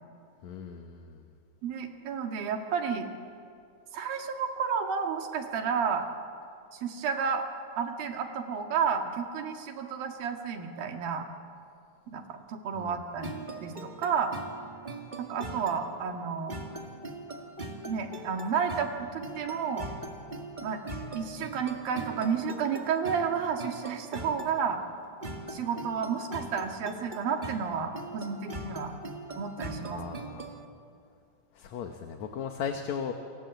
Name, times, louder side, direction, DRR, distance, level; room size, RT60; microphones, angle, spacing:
voice 1, 0.4-1.2 12.7-13.0 29.8-30.5 31.5-33.1, left 7 dB, 60° left, 5 dB, 2.3 m, -37 dB
voice 2, 1.6-3.1 3.9-6.1 6.7-7.5 7.8-11.3 12.1-13.3 13.6-14.3 15.2-16.5 17.9-19.9 20.6-20.8 21.1-24.8 25.5-29.0 29.4-30.0, right 6 dB, 85° right, 4 dB, 3.7 m, -31 dB
sound 1, 13.2-30.7, right 2 dB, 25° right, 1.1 m, -41 dB
29.0 x 24.5 x 8.0 m, 2.4 s
omnidirectional pair, 4.1 m